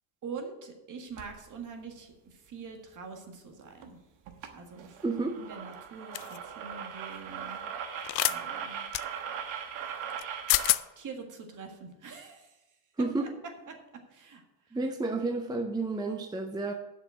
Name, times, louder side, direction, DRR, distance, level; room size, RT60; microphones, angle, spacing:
voice 1, 0.2-4.0 4.5-5.0 5.4-7.6 8.3-8.8 11.0-12.6 13.2-13.3 13.7-13.8 14.1-14.4, right 5 dB, 40° right, 5 dB, 1.7 m, -44 dB
sound 1, 1.2-1.4 3.8-3.9 4.3-4.5 4.8-10.8, right 8 dB, 80° right, 1.3 m, -39 dB
voice 2, 5.0-5.4 13.0-13.3 14.7-16.7, right 3 dB, 10° right, 4 dB, 0.5 m, -31 dB
sound 2, 6.1-6.4 8.0-8.4 8.9-9.0 10.2-10.3 10.5-10.8, left 20 dB, 85° left, 0.5 m, -26 dB
7.5 x 6.4 x 7.7 m, 1.0 s
cardioid pair, 145°, 46 cm